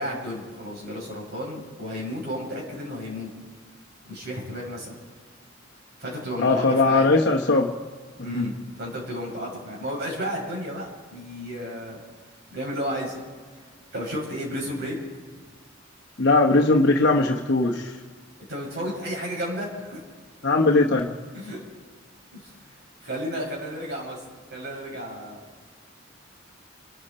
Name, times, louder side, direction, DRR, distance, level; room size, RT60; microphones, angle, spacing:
voice 1, 0.0-3.3 4.0-5.0 6.0-7.1 8.2-12.0 12.5-13.2 13.9-15.0 18.5-20.0 21.3-21.6 22.3-22.8 23.0-24.2 24.5-25.4, equal, 55° right, -3 dB, 6.7 m, -32 dB
voice 2, 6.4-7.7 8.3-8.5 16.2-17.9 20.4-21.1, left 3 dB, 60° left, 0 dB, 1.2 m, -20 dB
27.5 x 11.5 x 4.4 m, 1.5 s
head